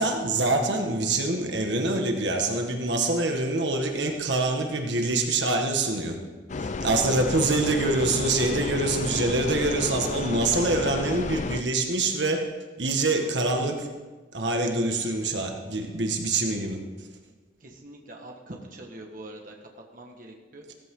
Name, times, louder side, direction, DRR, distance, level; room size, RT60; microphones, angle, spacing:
voice 1, 0.0-6.2 6.6-12.4 12.8-13.9 14.3-16.8, right 2 dB, 75° right, 3 dB, 1.7 m, -25 dB
sound 1, 6.5-11.6, left 3 dB, 40° left, 0.5 m, -32 dB
voice 2, 17.6-19.5 19.9-20.6, right 1 dB, 50° right, 1 dB, 1.6 m, -43 dB
16.5 x 14.5 x 3.8 m, 1.3 s
head